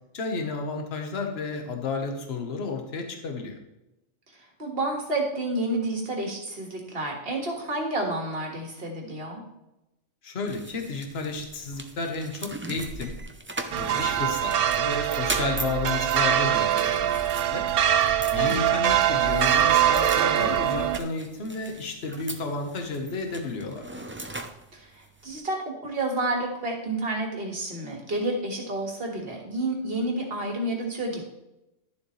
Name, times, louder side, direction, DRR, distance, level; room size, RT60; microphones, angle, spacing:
voice 1, 0.1-3.5 10.2-13.1 13.8-17.6 18.3-24.1, left 3 dB, 50° left, 4 dB, 1.4 m, -32 dB
voice 2, 4.3-9.4 18.4-18.6 24.7-31.2, right 2 dB, 45° right, 1 dB, 2.0 m, -30 dB
sound 1, 10.5-25.4, right 2 dB, 15° right, 0.4 m, -40 dB
sound 2, 13.7-21.0, right 10 dB, 60° right, 0.6 m, -23 dB
11.5 x 7.3 x 3.2 m, 0.92 s
omnidirectional pair, 1.4 m